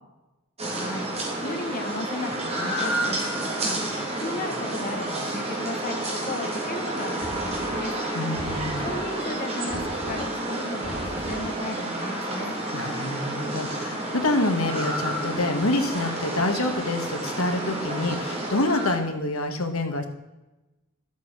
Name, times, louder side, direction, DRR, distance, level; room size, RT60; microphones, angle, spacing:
sound 1, 0.6-19.0, right 1 dB, 30° right, 2.9 m, -30 dB
voice 1, 0.7-1.1 1.4-7.9 8.8-12.5, left 2 dB, 40° left, 5 dB, 1.5 m, -35 dB
Knock, 7.2-7.9 8.4-9.1 9.7-10.3 10.8-11.6, equal, 5° left, 3.7 m, -38 dB
voice 2, 8.1-8.9 12.7-20.1, left 2 dB, 70° left, 6 dB, 1.6 m, -27 dB
12.5 x 8.3 x 6.1 m, 1.0 s
head